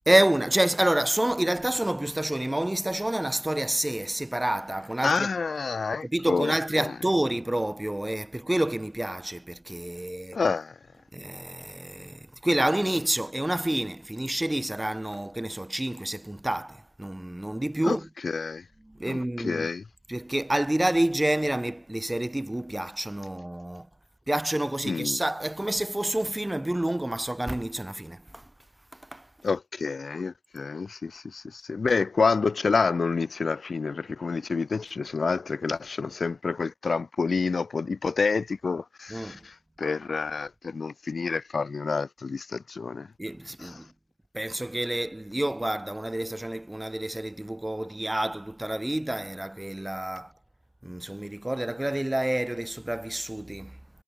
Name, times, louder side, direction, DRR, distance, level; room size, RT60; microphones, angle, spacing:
voice 1, 0.1-5.3 6.0-10.4 11.1-18.1 18.9-19.7 20.1-23.9 24.3-28.4 29.1-29.2 39.1-39.4 43.2-43.9 44.3-50.3 50.8-53.8, right 1 dB, 10° right, 1.7 m, -28 dB
voice 2, 5.0-6.9 10.3-10.7 17.8-18.0 18.2-18.6 19.1-19.8 24.9-25.2 29.4-39.5 39.8-43.1 43.6-43.8, left 4 dB, 35° left, 0.6 m, -28 dB
cardioid pair, 90°, 0 cm